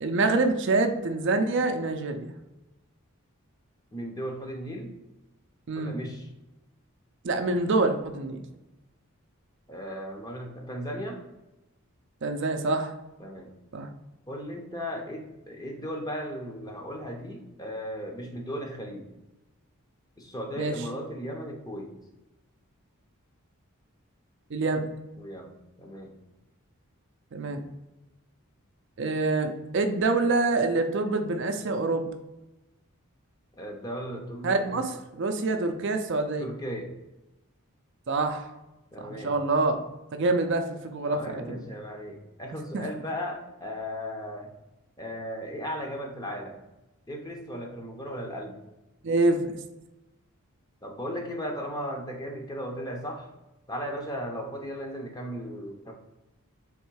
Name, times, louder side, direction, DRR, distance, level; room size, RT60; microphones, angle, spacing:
voice 1, 0.0-2.3 5.7-6.0 7.2-8.4 12.2-12.9 13.7-13.9 20.6-20.7 24.5-24.8 27.3-27.6 29.0-32.1 34.4-36.5 38.1-38.5 39.0-39.8 40.1-41.6 42.7-42.8 49.0-49.4, right 3 dB, 55° right, 6 dB, 0.4 m, -26 dB
voice 2, 3.9-5.0 5.7-6.3 9.7-11.2 13.2-13.5 14.3-19.1 20.2-21.9 25.2-25.5 25.8-26.1 33.5-34.8 36.4-36.9 38.9-39.3 41.0-44.5 45.0-46.6 47.1-48.6 50.8-53.3 53.7-55.9, equal, 15° left, 1 dB, 0.6 m, -36 dB
3.5 x 3.2 x 4.6 m, 0.99 s
head